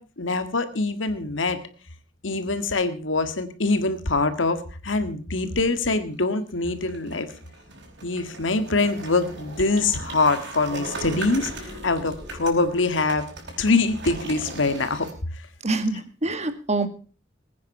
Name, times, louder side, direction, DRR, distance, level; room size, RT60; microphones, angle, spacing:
voice 1, 0.0-1.6 2.2-7.3 8.0-13.3 13.6-15.1, left 3 dB, 80° left, 10 dB, 1.8 m, -24 dB
sound 1, 6.5-15.1, right 2 dB, 65° right, 5.3 m, -38 dB
voice 2, 15.6-16.9, right 2 dB, 35° right, 10 dB, 1.8 m, -25 dB
20.5 x 9.6 x 5.4 m, 0.37 s
head